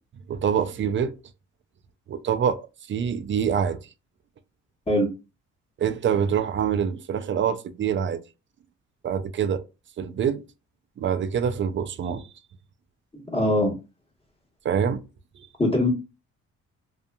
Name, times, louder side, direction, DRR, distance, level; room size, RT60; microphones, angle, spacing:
voice 1, 0.3-1.2 2.1-3.8 5.8-8.2 9.0-9.6 10.0-10.4 11.0-12.3 14.6-15.0 15.4-15.5, right 8 dB, 40° right, 0.4 m, -25 dB
voice 2, 13.1-13.7 15.6-15.9, left 1 dB, 20° left, 1.3 m, -22 dB
2.6 x 2.4 x 2.2 m
cardioid pair, 90°, 30 cm